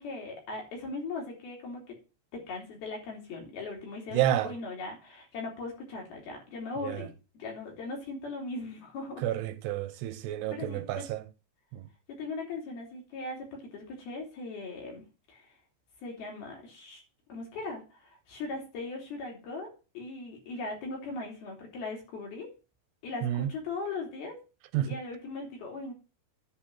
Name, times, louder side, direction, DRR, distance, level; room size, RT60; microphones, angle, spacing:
voice 1, 0.0-1.9 2.3-7.1 7.3-9.2 10.5-11.0 12.2-13.5 13.7-15.0 15.3-15.6 16.0-17.0 17.3-19.7 19.9-22.5 23.0-24.4 24.9-25.9, left 3 dB, 65° left, 4.9 m, -39 dB
voice 2, 4.1-4.5 6.8-7.0 9.2-11.2 11.7-11.8 23.2-23.5 24.7-24.9, right 12 dB, 90° right, 2.8 m, -30 dB
10.5 x 4.6 x 7.5 m
omnidirectional pair, 4.8 m